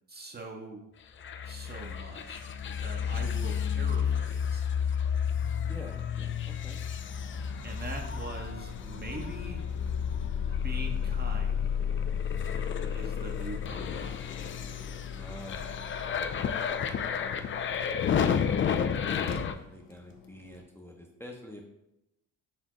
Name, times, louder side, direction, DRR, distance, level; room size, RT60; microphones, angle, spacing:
voice 1, 0.1-0.9 1.5-4.7 7.6-9.6 10.6-11.7 12.9-14.2, right 2 dB, 25° right, 2 dB, 0.8 m, -43 dB
sound 1, 1.2-19.5, left 7 dB, 30° left, 0.4 m, -31 dB
sound 2, 5.4-20.6, left 8 dB, 55° left, 0.7 m, -45 dB
voice 2, 5.6-6.3 6.6-6.8 15.1-15.8 16.8-17.3 18.2-21.6, left 1 dB, 5° left, 0 dB, 0.7 m, -47 dB
4.2 x 3.5 x 3.1 m, 0.89 s
supercardioid pair, 55°, 42 cm